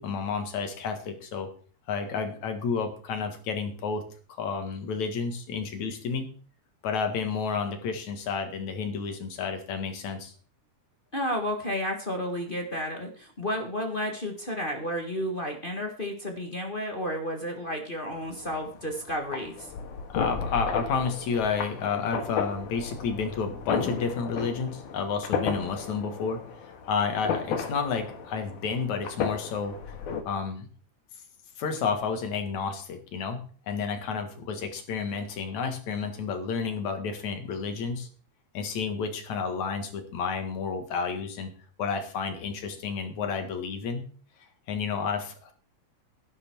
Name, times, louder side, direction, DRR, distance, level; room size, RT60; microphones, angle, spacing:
voice 1, 0.0-1.5 1.9-4.0 4.4-6.3 6.8-10.3 20.1-30.7 31.6-33.4 33.7-38.1 38.5-41.5 41.8-44.0 44.7-45.5, left 5 dB, 65° left, 6 dB, 3.0 m, -31 dB
voice 2, 11.1-19.7, equal, 30° left, 2 dB, 0.9 m, -32 dB
sound 1, 18.1-30.2, left 6 dB, 85° left, 3.0 m, -34 dB
12.0 x 11.0 x 4.5 m, 0.42 s
omnidirectional pair, 3.6 m